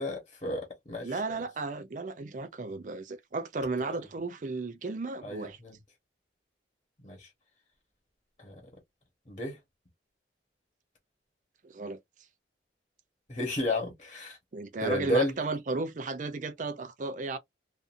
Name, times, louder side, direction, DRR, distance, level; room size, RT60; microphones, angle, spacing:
voice 1, 0.0-1.1 5.2-5.8 7.0-7.3 8.4-8.5 9.3-9.6 13.3-14.4 14.8-15.3, left 1 dB, 25° left, 1.1 m, -32 dB
voice 2, 1.0-5.6 11.6-12.0 14.5-17.4, right 3 dB, 45° right, 0.4 m, -34 dB
2.6 x 2.5 x 2.5 m
head